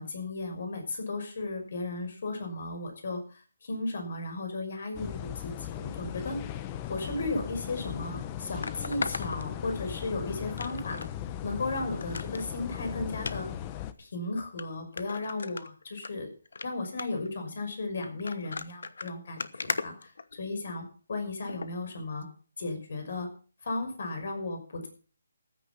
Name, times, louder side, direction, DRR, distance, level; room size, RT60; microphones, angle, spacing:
voice 1, 0.0-6.4 6.9-11.0 11.4-13.5 14.0-16.3 16.6-22.3 22.6-23.3 23.6-24.9, left 2 dB, 55° left, 5 dB, 5.8 m, -35 dB
sound 1, 4.9-13.9, left 11 dB, 20° left, 0.8 m, -38 dB
sound 2, 7.6-7.7 8.6-10.1 10.6-11.1 11.5-11.6 12.0-12.4 13.2-13.4 14.1-14.2 14.6-14.7 15.0-16.1 16.4-16.7 17.0-17.3 18.0-20.7 21.5-21.7 22.2-22.3, left 4 dB, 75° left, 1.1 m, -37 dB
14.5 x 9.5 x 5.9 m, 0.40 s
hypercardioid pair, 165°, 0 cm